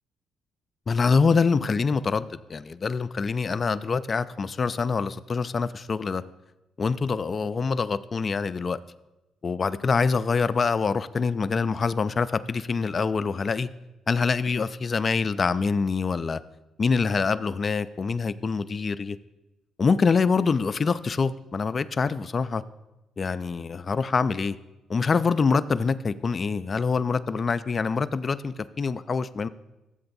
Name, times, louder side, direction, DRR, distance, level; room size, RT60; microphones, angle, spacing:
voice 1, 0.9-6.2 6.8-8.8 9.4-13.7 14.1-16.4 16.8-19.2 19.8-22.6 23.2-24.6 24.9-29.5, left 5 dB, 40° left, 13 dB, 0.3 m, -25 dB
14.5 x 7.7 x 2.6 m, 0.99 s
cardioid pair, 90°, 0 cm